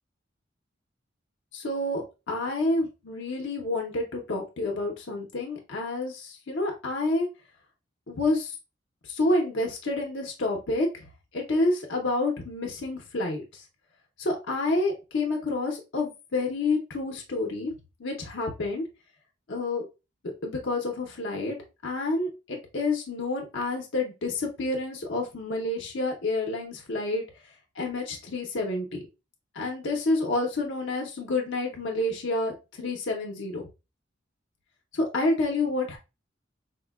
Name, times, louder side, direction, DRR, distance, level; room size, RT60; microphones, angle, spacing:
voice 1, 1.5-7.3 8.1-8.5 9.1-10.9 11.3-13.6 14.2-17.7 18.0-18.8 19.5-19.9 20.4-21.6 21.8-27.2 27.8-29.0 29.5-33.6 34.9-36.0, left 2 dB, 70° left, 1 dB, 0.6 m, -29 dB
4.2 x 2.1 x 2.2 m, 0.28 s
head